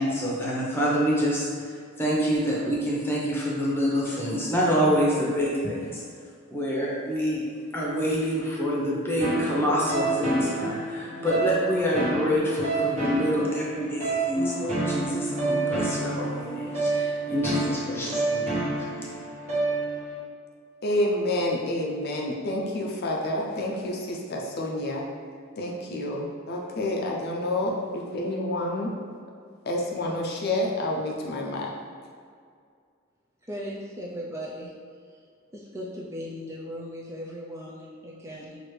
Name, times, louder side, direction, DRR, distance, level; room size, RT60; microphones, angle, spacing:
voice 1, 0.0-1.7 2.0-6.0 6.5-7.4 7.7-19.0, equal, 10° left, -5 dB, 0.9 m, -26 dB
sound 1, 9.2-20.2, right 2 dB, 35° right, 1.1 m, -29 dB
voice 2, 20.8-25.0 25.6-28.9 29.6-31.7, left 1 dB, 50° left, -1 dB, 0.5 m, -28 dB
voice 3, 33.5-34.7 35.1-35.2 35.5-38.6, equal, 15° right, -4 dB, 0.4 m, -37 dB
6.1 x 2.5 x 3.2 m, 2.2 s
head